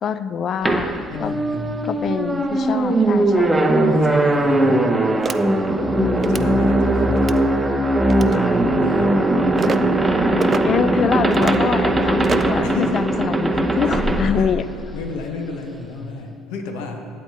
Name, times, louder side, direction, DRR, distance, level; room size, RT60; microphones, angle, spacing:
voice 1, 0.0-0.9 1.2-1.3 1.8-3.6 4.7-4.8 5.9-6.7 8.2-8.6 9.7-9.8 10.2-14.7, left 7 dB, 45° left, 14 dB, 0.4 m, -25 dB
sound 1, 0.7-15.2, right 1 dB, 10° right, 0.7 m, -19 dB
voice 2, 1.1-1.8 3.9-4.8 6.3-7.4 8.0-9.1 12.6-13.0 13.7-14.0 14.4-14.5 14.9-17.1, left 4 dB, 65° left, 4 dB, 0.9 m, -32 dB
sound 2, 5.2-5.4 6.2-6.5 7.2-7.4 8.1-8.4 9.6-9.8 10.4-10.6 11.3-11.6 12.2-12.6, right 6 dB, 35° right, 0.3 m, -27 dB
12.0 x 8.4 x 2.7 m, 2.3 s
hypercardioid pair, 60°, 0 cm